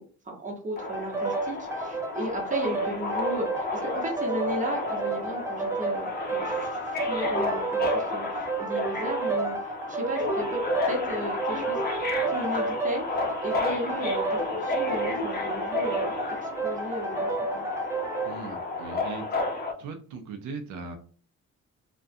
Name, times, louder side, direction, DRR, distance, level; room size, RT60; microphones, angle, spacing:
voice 1, 0.0-11.8 12.3-17.7, equal, 25° right, 0 dB, 0.9 m, -35 dB
Subway metro underground, 0.8-19.7, left 3 dB, 30° left, 0.6 m, -32 dB
sound 1, 0.9-18.3, right 3 dB, 10° right, 0.3 m, -31 dB
voice 2, 18.2-19.3 19.8-21.0, right 4 dB, 75° right, 5 dB, 0.5 m, -39 dB
2.3 x 2.2 x 2.6 m, 0.43 s
cardioid pair, 90°, 30 cm